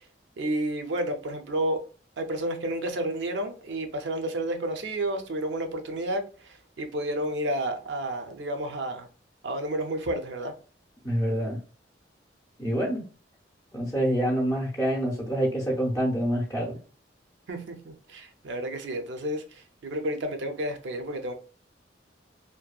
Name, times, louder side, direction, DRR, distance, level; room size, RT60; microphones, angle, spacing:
voice 1, 0.4-1.8 2.2-6.2 6.8-9.1 9.4-10.5 17.5-19.4 19.8-21.3, right 1 dB, 75° right, 0.5 m, -30 dB
voice 2, 11.0-11.6 12.6-13.0 13.7-16.8, equal, 15° left, 0.6 m, -26 dB
2.7 x 2.1 x 2.3 m
head